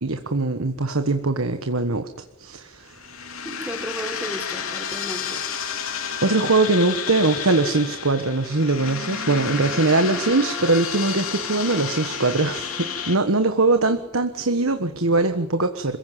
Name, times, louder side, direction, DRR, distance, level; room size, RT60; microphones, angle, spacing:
voice 1, 0.0-2.1 2.4-2.9 5.9-16.0, right 3 dB, 90° right, 8 dB, 1.4 m, -22 dB
sound 1, 2.9-13.1, left 7 dB, 85° left, 3.1 m, -31 dB
voice 2, 3.4-5.4 10.0-10.3, equal, 10° right, 3 dB, 4.4 m, -34 dB
27.0 x 16.0 x 9.4 m, 0.89 s
head